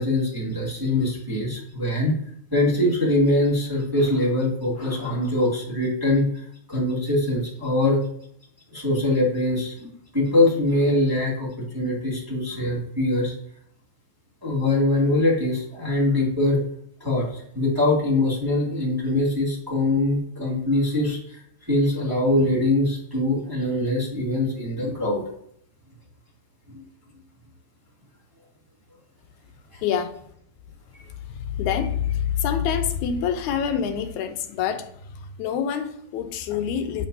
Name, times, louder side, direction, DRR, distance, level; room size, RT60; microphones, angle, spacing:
voice 1, 0.0-2.1 2.5-6.4 6.7-8.0 8.7-11.5 11.7-13.3 14.4-16.6 17.0-21.2 21.7-25.2 26.7-26.8 29.7-29.8 30.9-31.0, left 2 dB, 10° right, -7 dB, 1.7 m, -23 dB
voice 2, 29.8-30.2 31.3-37.1, left 8 dB, 80° left, 8 dB, 2.0 m, -26 dB
7.4 x 5.9 x 2.7 m, 0.67 s
omnidirectional pair, 3.5 m